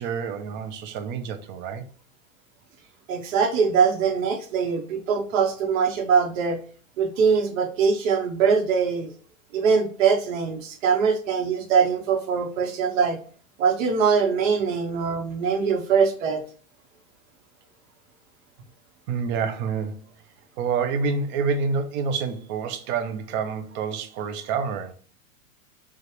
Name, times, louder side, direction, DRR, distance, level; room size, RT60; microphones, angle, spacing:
voice 1, 0.0-1.8 19.1-20.1 20.6-24.9, right 5 dB, 30° right, 0.4 m, -28 dB
voice 2, 3.1-6.6 7.0-9.1 9.5-13.2 13.6-16.4, right 6 dB, 65° right, 1.1 m, -22 dB
4.9 x 2.4 x 3.1 m
hypercardioid pair, 130°, 42 cm